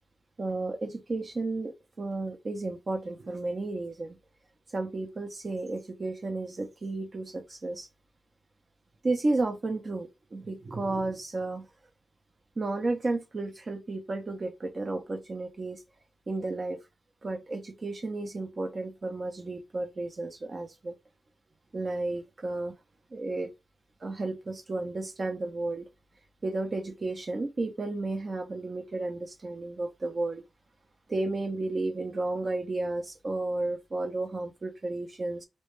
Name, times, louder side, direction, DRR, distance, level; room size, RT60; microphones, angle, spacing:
voice 1, 0.4-4.2 4.7-7.9 9.0-11.7 12.6-15.8 16.3-16.8 17.2-20.9 21.7-22.7 23.1-23.5 24.0-25.9 26.4-30.4 31.1-35.5, right 2 dB, 50° right, 0.5 m, -32 dB
2.2 x 2.1 x 3.0 m
cardioid pair, 45°, 0 cm